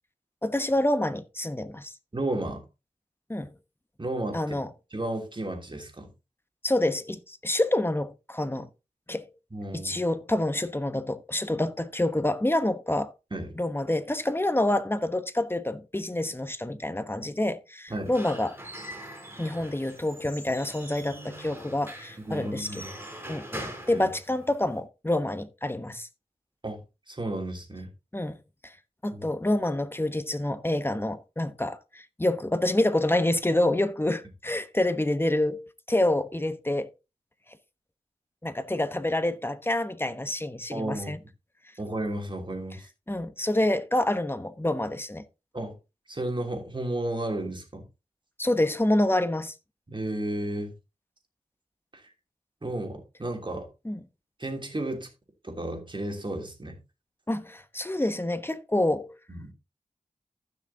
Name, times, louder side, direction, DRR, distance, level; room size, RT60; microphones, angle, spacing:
voice 1, 0.4-1.9 3.3-3.5 4.3-4.7 6.6-8.7 9.1-9.3 9.7-13.1 13.6-18.5 19.4-22.8 23.3-26.1 28.1-28.4 28.6-28.7 29.0-36.9 38.4-41.2 43.1-45.2 48.4-49.5 53.8-54.0 57.3-59.1, left 1 dB, 15° left, 1.1 m, -27 dB
voice 2, 2.1-2.6 4.0-4.5 4.9-6.1 9.5-9.9 13.3-13.5 17.9-18.1 22.2-22.9 23.9-24.1 26.6-27.9 29.1-29.2 40.7-41.1 41.8-42.9 45.5-45.7 46.1-47.9 49.9-50.7 51.9-52.1 52.6-53.7 54.4-55.1 55.4-56.8 59.3-59.5, right 1 dB, 35° right, 3.0 m, -33 dB
Squeak / Wood, 17.9-24.8, right 1 dB, 15° right, 4.3 m, -42 dB
15.0 x 6.2 x 2.8 m
wide cardioid pair, 60°, 14 cm